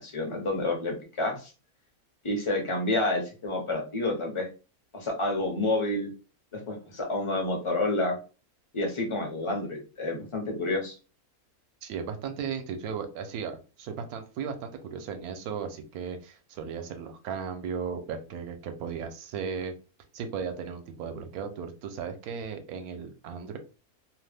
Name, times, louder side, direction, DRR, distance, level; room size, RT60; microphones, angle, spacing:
voice 1, 0.0-1.5 2.2-4.5 4.9-6.1 6.5-8.2 8.7-10.9, left 2 dB, 40° left, 1 dB, 0.4 m, -29 dB
voice 2, 11.8-19.7 20.1-23.6, right 6 dB, 80° right, 7 dB, 1.1 m, -36 dB
2.8 x 2.1 x 3.3 m, 0.33 s
omnidirectional pair, 1.6 m